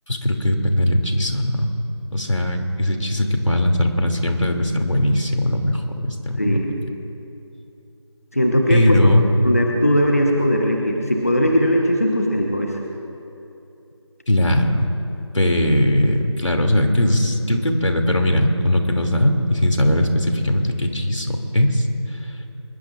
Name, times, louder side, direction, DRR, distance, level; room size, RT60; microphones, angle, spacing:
voice 1, 0.1-1.7 2.1-6.6 8.7-9.2 14.3-14.9 15.3-21.9, left 1 dB, 85° left, 3 dB, 2.6 m, -19 dB
voice 2, 6.4-6.7 8.3-9.0 9.4-12.8, equal, 30° left, 1 dB, 1.1 m, -19 dB
24.0 x 22.0 x 2.5 m, 2.8 s
figure-of-eight pair, 180°, 15 cm